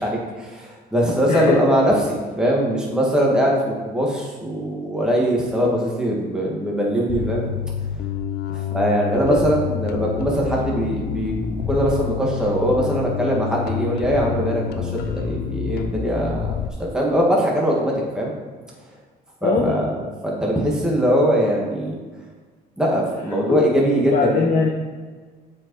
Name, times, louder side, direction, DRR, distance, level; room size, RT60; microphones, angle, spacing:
voice 1, 0.0-7.5 8.5-18.3 19.4-21.9 22.8-24.5, equal, 5° right, -3 dB, 1.7 m, -21 dB
voice 2, 1.3-1.6 9.3-9.4 19.4-19.8 23.5-23.7 23.9-24.7, left 5 dB, 50° left, 0 dB, 0.9 m, -21 dB
Bass guitar, 7.1-16.7, left 8 dB, 75° left, 0.6 m, -28 dB
7.6 x 5.1 x 4.6 m, 1.4 s
cardioid pair, 110°, 17 cm